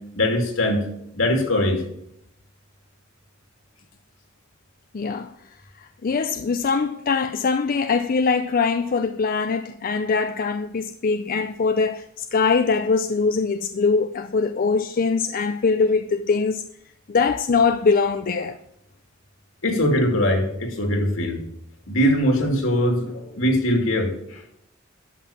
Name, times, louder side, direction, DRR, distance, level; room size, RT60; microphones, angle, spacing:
voice 1, 0.1-0.8 1.1-1.8 19.6-21.4 21.9-24.1, equal, 70° left, 2.7 m, -21 dB
voice 2, 4.9-5.3 6.0-12.0 12.3-16.6 17.1-18.6, left 4 dB, 45° left, 0.4 m, -22 dB
11.5 x 6.5 x 7.2 m
head